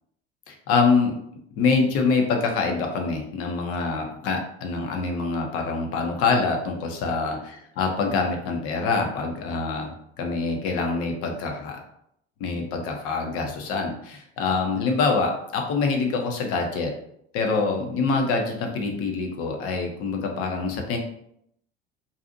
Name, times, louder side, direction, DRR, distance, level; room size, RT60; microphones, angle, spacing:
voice 1, 0.5-1.1 1.6-7.4 7.8-11.8 12.4-16.9 17.3-21.0, left 4 dB, 45° left, 3 dB, 0.6 m, -25 dB
2.6 x 2.4 x 2.6 m, 0.74 s
figure-of-eight pair, 65°, 31 cm